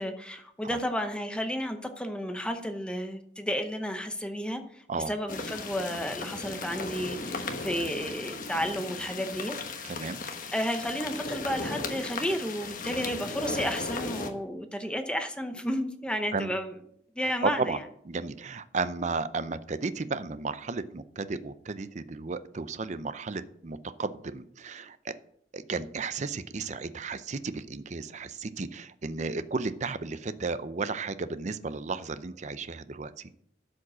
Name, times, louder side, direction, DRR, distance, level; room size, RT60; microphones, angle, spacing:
voice 1, 0.0-9.6 10.5-16.7 17.2-17.8, equal, 5° left, 6 dB, 0.8 m, -32 dB
sound 1, 5.3-14.3, left 3 dB, 50° left, 1.2 m, -36 dB
voice 2, 9.8-10.2 16.3-16.5 17.4-17.8 18.1-25.1 25.5-33.3, right 4 dB, 40° right, 13 dB, 0.5 m, -33 dB
12.0 x 5.2 x 6.1 m, 0.70 s
head